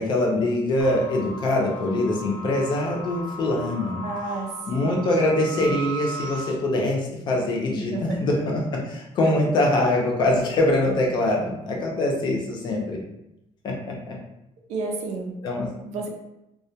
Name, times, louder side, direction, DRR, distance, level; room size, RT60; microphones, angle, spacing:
voice 1, 0.0-4.0 4.7-13.0 13.6-13.7 14.1-14.2 15.4-15.7, left 1 dB, 40° left, -1 dB, 0.5 m, -23 dB
sound 1, 0.8-6.5, right 1 dB, 10° right, 0.6 m, -37 dB
voice 2, 4.0-5.0 5.6-5.7 7.9-8.4 9.2-9.3 14.7-15.4 15.8-16.1, right 3 dB, 80° right, 1 dB, 0.5 m, -32 dB
2.2 x 2.1 x 2.7 m, 0.90 s
cardioid pair, 180°, 12 cm